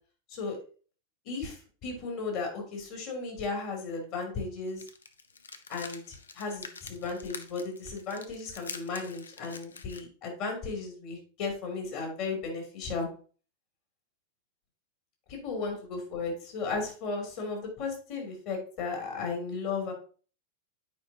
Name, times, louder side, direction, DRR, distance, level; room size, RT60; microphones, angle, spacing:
voice 1, 1.2-4.9 5.7-13.1 15.3-19.9, left 4 dB, 45° left, 1 dB, 2.9 m, -35 dB
sound 1, 4.7-10.0, left 5 dB, 70° left, 0.6 m, -45 dB
9.3 x 5.1 x 2.8 m, 0.39 s
figure-of-eight pair, 90°, 0 cm